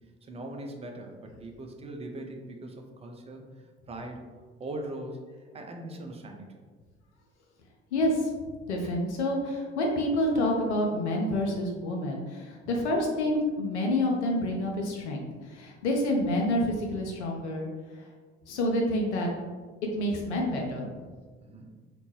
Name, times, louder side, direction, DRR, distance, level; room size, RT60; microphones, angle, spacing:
voice 1, 0.2-4.2 4.6-5.2 5.5-6.5 12.7-12.9 21.4-21.7, right 1 dB, 20° right, 3 dB, 0.4 m, -40 dB
voice 2, 7.9-8.3 8.7-17.7 17.9-18.1 18.5-19.3 19.9-20.9, left 1 dB, 80° left, 0 dB, 0.5 m, -28 dB
2.9 x 2.1 x 3.1 m, 1.4 s
figure-of-eight pair, 55°, 34 cm